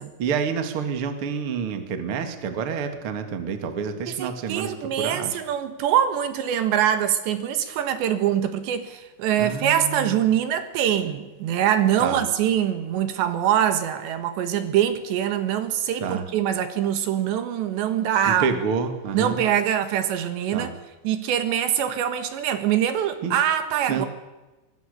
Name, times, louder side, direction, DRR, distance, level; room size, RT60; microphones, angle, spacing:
voice 1, 0.2-5.4 9.4-10.3 12.0-12.3 16.0-16.2 18.3-19.4 20.5-20.7 23.2-23.3 23.9-24.0, right 6 dB, 45° right, 6 dB, 2.0 m, -28 dB
voice 2, 4.1-18.5 19.1-20.7 21.0-24.1, right 10 dB, 75° right, 9 dB, 3.7 m, -24 dB
24.5 x 21.0 x 6.7 m, 1.1 s
omnidirectional pair, 5.3 m